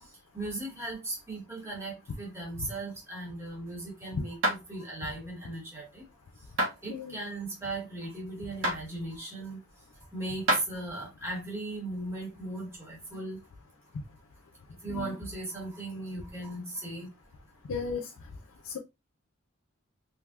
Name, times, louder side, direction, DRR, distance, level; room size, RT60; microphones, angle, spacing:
voice 1, 0.3-6.0 6.8-9.6 10.1-13.4 14.8-17.1, right 2 dB, 15° right, 1.1 m, -37 dB
sound 1, 4.4-4.6 6.6-6.8 8.6-8.8 10.5-10.7, right 1 dB, 70° right, 1.0 m, -26 dB
voice 2, 17.7-18.1 18.7-18.8, left 5 dB, 75° left, 0.4 m, -34 dB
3.5 x 2.6 x 2.3 m
head